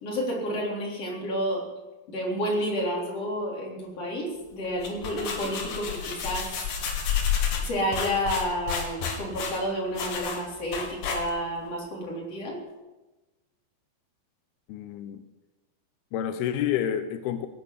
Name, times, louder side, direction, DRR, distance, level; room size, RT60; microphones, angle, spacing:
voice 1, 0.0-1.6 2.1-6.6 7.6-12.6, equal, 40° left, 4.7 m, -30 dB
sound 1, 4.6-11.6, left 7 dB, 65° left, 3.7 m, -30 dB
voice 2, 14.7-15.2 16.1-17.5, left 10 dB, 85° left, 2.8 m, -29 dB
17.5 x 9.1 x 8.3 m
omnidirectional pair, 4.4 m